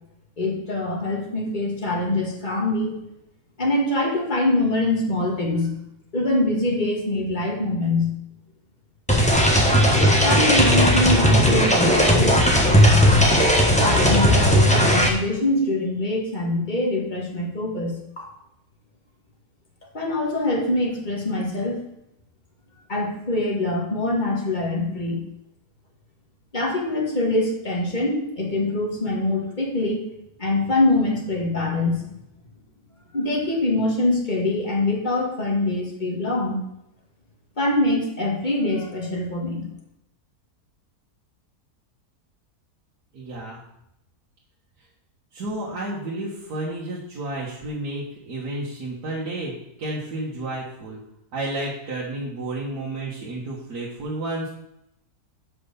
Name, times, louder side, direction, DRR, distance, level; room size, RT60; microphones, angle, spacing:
voice 1, 0.4-3.0 3.6-5.8 6.1-8.1 10.2-12.4 13.8-18.3 19.9-21.8 22.9-25.3 26.5-30.0 30.4-32.0 33.1-36.6 37.6-39.7, left 2 dB, 30° left, -1 dB, 1.9 m, -24 dB
sound 1, 9.1-15.1, equal, 5° left, 1.0 m, -17 dB
voice 2, 43.1-43.6 45.3-49.5 49.8-51.0 51.3-54.5, right 2 dB, 70° right, -5 dB, 1.9 m, -31 dB
6.0 x 5.5 x 6.8 m, 0.82 s
omnidirectional pair, 1.7 m